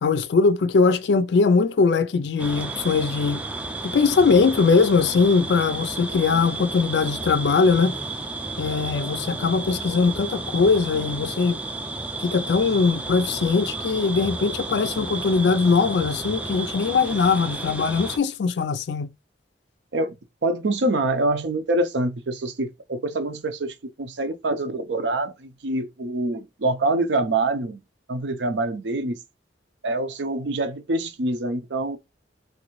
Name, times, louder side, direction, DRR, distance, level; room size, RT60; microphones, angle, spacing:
voice 1, 0.0-3.4 3.8-8.0 8.6-11.6 12.2-19.1, left 4 dB, 65° left, 0.4 m, -21 dB
sound 1, 2.4-18.2, right 2 dB, 10° right, 0.3 m, -32 dB
voice 2, 20.4-27.8 28.1-29.2 29.8-32.0, right 2 dB, 75° right, 0.6 m, -25 dB
3.3 x 2.6 x 3.0 m
head